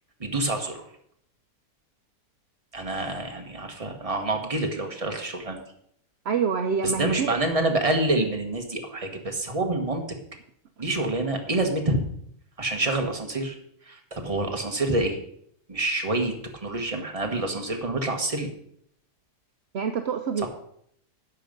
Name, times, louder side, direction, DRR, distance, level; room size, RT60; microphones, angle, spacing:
voice 1, 0.2-0.9 2.7-5.6 6.8-10.2 10.8-12.0 12.6-13.6 13.8-15.2 15.7-16.3 16.6-18.5, right 2 dB, 20° right, 3 dB, 1.5 m, -27 dB
voice 2, 6.3-7.4 19.7-20.5, right 6 dB, 55° right, 6 dB, 0.8 m, -26 dB
11.5 x 7.5 x 5.3 m, 0.69 s
omnidirectional pair, 1.8 m